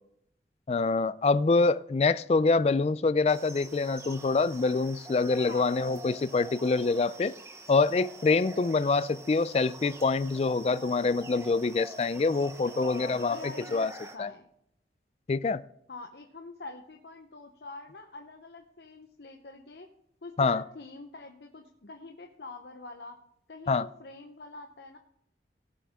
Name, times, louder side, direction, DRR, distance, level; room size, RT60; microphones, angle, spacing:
voice 1, 0.7-7.3 7.7-13.4 13.7-13.9 14.2-14.3 15.3-15.6 20.4-20.6 23.7-23.9, left 3 dB, 35° left, 16 dB, 0.3 m, -25 dB
sound 1, 3.3-14.2, right 2 dB, 15° right, 0.8 m, -46 dB
voice 2, 5.5-5.9 12.7-14.5 15.9-19.9 20.2-23.2 23.5-25.0, left 3 dB, 70° left, 4 dB, 0.9 m, -45 dB
17.0 x 7.6 x 3.6 m, 0.75 s
head